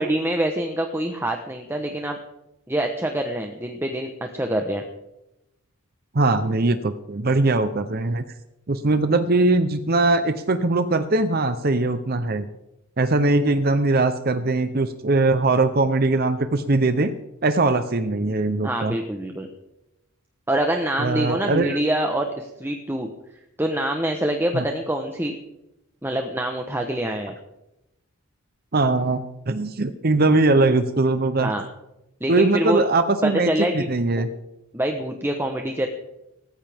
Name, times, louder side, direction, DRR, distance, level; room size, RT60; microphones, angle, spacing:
voice 1, 0.0-2.2 2.7-4.8 18.6-19.5 20.5-23.1 23.6-25.4 26.0-27.3 31.4-31.6 32.2-32.8 33.2-34.3 34.7-35.9, right 1 dB, 10° right, 3 dB, 1.0 m, -25 dB
voice 2, 6.1-8.2 8.7-12.5 13.0-17.1 17.4-19.0 21.0-21.8 24.5-24.7 28.7-31.5 32.3-33.5 33.7-34.3, right 2 dB, 45° right, 9 dB, 0.7 m, -21 dB
18.5 x 14.5 x 3.6 m, 0.91 s
head